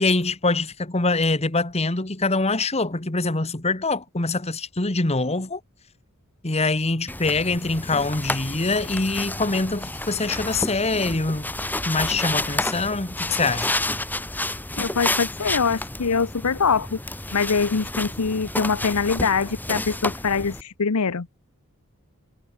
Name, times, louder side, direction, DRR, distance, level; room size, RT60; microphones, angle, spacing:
voice 1, 0.0-5.6 6.4-11.5 11.8-13.7, left 3 dB, 30° left, 1.7 m, -24 dB
sound 1, 7.1-20.6, left 2 dB, 10° left, 3.8 m, -30 dB
voice 2, 14.8-17.0 17.3-21.3, left 5 dB, 90° left, 0.9 m, -23 dB
head